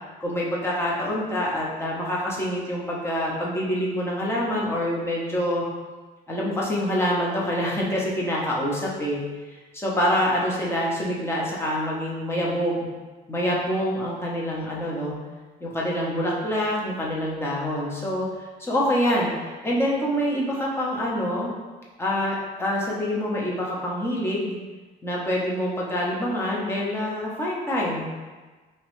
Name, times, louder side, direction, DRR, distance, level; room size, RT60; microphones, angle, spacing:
voice 1, 0.2-5.6 6.3-9.2 9.5-12.8 13.3-15.2 15.6-18.3 18.6-21.5 22.0-24.6 25.0-28.2, equal, 15° left, -4 dB, 0.8 m, -26 dB
3.1 x 2.9 x 3.1 m, 1.3 s
cardioid pair, 110°, 17 cm